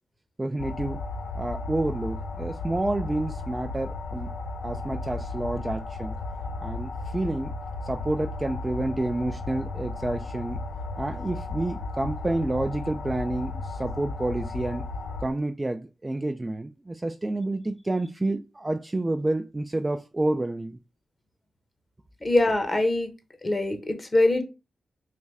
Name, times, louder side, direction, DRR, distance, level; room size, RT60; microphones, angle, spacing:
voice 1, 0.4-1.0 1.3-4.3 4.6-6.2 6.6-7.5 7.8-10.6 11.0-14.9 15.2-20.8, right 2 dB, 25° right, 0.3 m, -29 dB
sound 1, 0.6-15.3, left 3 dB, 80° left, 0.5 m, -34 dB
voice 2, 22.2-23.1 23.4-24.4, left 2 dB, 35° left, 0.9 m, -23 dB
3.3 x 2.5 x 3.2 m
cardioid pair, 50°, 0 cm